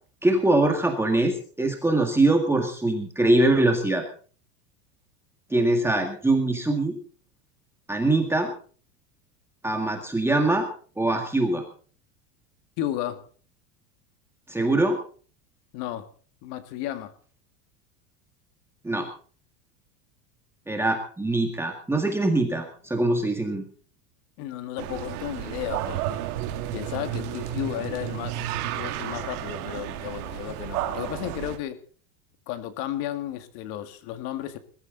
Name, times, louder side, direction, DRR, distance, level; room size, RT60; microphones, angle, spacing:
voice 1, 0.2-4.0 5.5-7.0 7.9-8.5 9.6-10.7 11.0-11.6 14.5-15.0 18.8-19.1 20.7-23.7, right 2 dB, 5° right, 2 dB, 1.9 m, -23 dB
voice 2, 12.8-13.3 15.7-16.1 16.4-17.1 24.4-26.2 26.7-28.4 28.8-31.8 32.5-34.6, left 12 dB, 55° left, 10 dB, 2.0 m, -33 dB
sound 1, 24.8-31.6, right 12 dB, 75° right, 2.3 m, -32 dB
21.0 x 13.0 x 4.0 m, 0.42 s
supercardioid pair, 150°, 46 cm